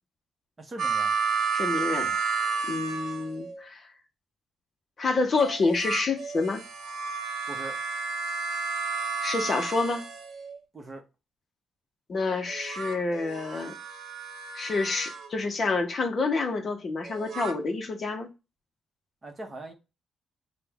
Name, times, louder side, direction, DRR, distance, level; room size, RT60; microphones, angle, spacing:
voice 1, 0.6-1.1 1.9-2.2 7.5-7.8 10.7-11.0 19.2-19.7, right 2 dB, 25° right, 0.7 m, -41 dB
sound 1, 0.8-3.6 5.4-10.6 12.5-15.3 17.0-17.5, right 5 dB, 65° right, 0.6 m, -32 dB
voice 2, 1.5-2.1 2.6-3.9 5.0-6.6 9.2-10.0 12.1-13.7 14.5-18.3, left 3 dB, 35° left, 0.5 m, -28 dB
4.9 x 2.0 x 3.4 m
cardioid pair, 160°, 0 cm